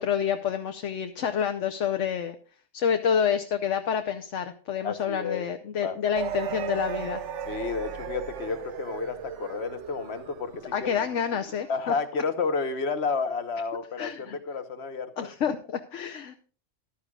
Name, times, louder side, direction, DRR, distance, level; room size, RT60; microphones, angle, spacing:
voice 1, 0.0-2.4 2.7-7.2 10.7-11.9 14.0-14.4 15.2-16.4, left 8 dB, 90° left, 6 dB, 1.2 m, -28 dB
voice 2, 4.8-5.5 5.8-6.0 7.5-10.9 11.7-15.3, left 4 dB, 65° left, 10 dB, 1.4 m, -31 dB
sound 1, 6.1-11.7, right 8 dB, 85° right, 1.1 m, -36 dB
14.0 x 12.0 x 2.4 m, 0.40 s
omnidirectional pair, 1.2 m